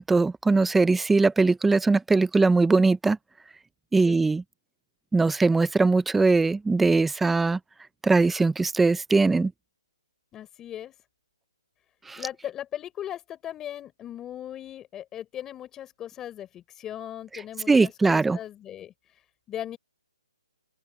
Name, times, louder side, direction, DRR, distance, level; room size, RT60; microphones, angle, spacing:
voice 1, 0.0-3.2 3.9-4.4 5.1-7.6 8.0-9.5 12.1-12.2 17.7-18.4, right 3 dB, 5° right, 0.7 m, -21 dB
voice 2, 10.3-10.9 12.1-18.9 19.5-19.8, left 11 dB, 15° left, 4.1 m, -38 dB
open air
hypercardioid pair, 155°, 3 cm